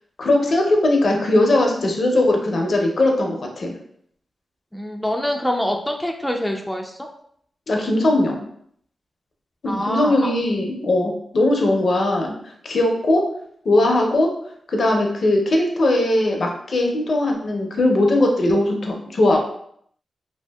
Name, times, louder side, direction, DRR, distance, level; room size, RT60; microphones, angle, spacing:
voice 1, 0.2-3.7 7.7-8.4 9.6-12.3 12.6-13.3 13.6-14.3 14.7-19.4, left 1 dB, 60° left, 2 dB, 0.5 m, -19 dB
voice 2, 4.7-6.9 9.7-10.1, equal, 5° left, 2 dB, 0.3 m, -25 dB
2.6 x 2.5 x 2.2 m, 0.67 s
cardioid pair, 70°, 0 cm